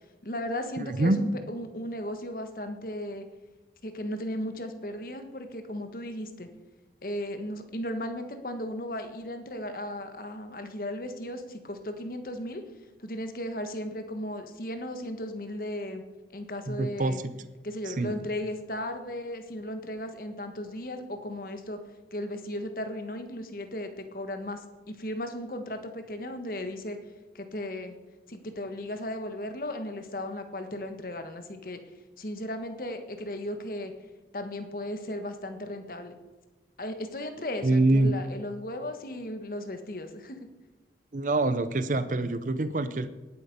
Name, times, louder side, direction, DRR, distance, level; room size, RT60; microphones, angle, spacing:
voice 1, 0.2-3.3 3.8-6.5 7.0-12.6 13.0-16.0 16.3-17.2 17.6-21.8 22.1-27.0 27.3-27.9 28.3-31.8 32.2-33.9 34.3-36.1 36.8-40.4, left 1 dB, 50° left, 7 dB, 1.4 m, -36 dB
voice 2, 0.8-1.2 16.7-17.3 17.9-18.2 37.6-38.1 41.1-43.1, right 2 dB, 45° right, 13 dB, 0.6 m, -25 dB
18.5 x 8.2 x 5.3 m, 1.2 s
head